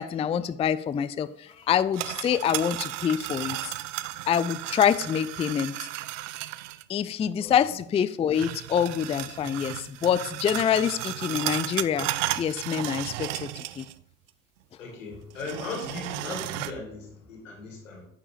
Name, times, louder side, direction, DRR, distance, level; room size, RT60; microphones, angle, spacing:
voice 1, 0.0-3.7 4.3-5.9 6.9-12.1 12.4-13.9, left 8 dB, 15° left, 15 dB, 0.3 m, -26 dB
sound 1, 1.7-6.8 8.3-14.0 14.3-14.4 15.3-16.7, right 16 dB, 75° right, 0.5 m, -34 dB
voice 2, 14.8-18.1, left 3 dB, 85° left, 1 dB, 2.1 m, -37 dB
9.8 x 7.3 x 3.3 m, 0.74 s
hypercardioid pair, 60°, 38 cm